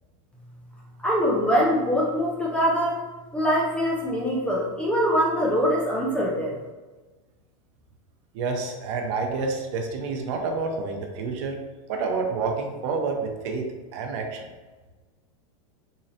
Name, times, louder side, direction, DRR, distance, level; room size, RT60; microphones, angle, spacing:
voice 1, 1.0-3.1 3.3-6.6, equal, 5° left, -3 dB, 0.6 m, -23 dB
voice 2, 8.3-11.6 11.9-14.5, right 4 dB, 55° right, 3 dB, 0.7 m, -29 dB
3.8 x 3.1 x 2.8 m, 1.2 s
supercardioid pair, 155°, 18 cm